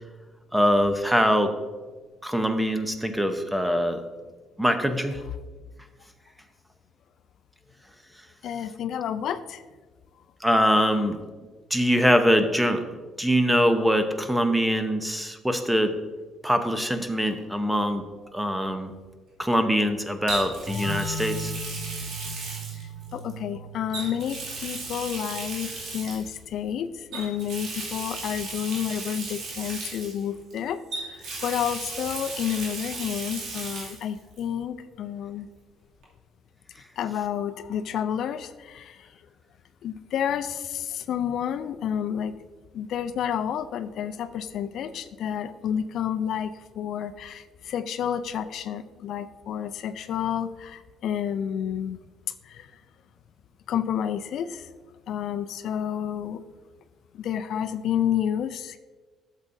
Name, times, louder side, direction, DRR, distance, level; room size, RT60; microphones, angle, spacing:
voice 1, 0.5-1.5 2.2-4.0 4.6-5.2 10.4-11.2 11.7-12.8 13.2-15.9 16.4-18.0 18.3-18.9 19.4-21.5, equal, 5° right, 7 dB, 0.8 m, -23 dB
voice 2, 8.4-9.6 10.9-11.1 23.1-35.5 37.0-39.1 39.8-42.3 42.7-52.0 52.4-52.7 53.7-54.7 55.1-56.4 57.1-58.8, left 9 dB, 70° left, 10 dB, 0.4 m, -30 dB
Water tap faucet, 17.3-17.5 20.3-23.3 23.9-26.4 27.1-30.5 30.9-34.1 34.4-34.5 36.0-36.1, right 3 dB, 70° right, 2.4 m, -36 dB
sound 1, 20.7-26.1, equal, 55° right, 2.4 m, -37 dB
12.0 x 7.3 x 2.6 m, 1.4 s
cardioid pair, 95°, 0 cm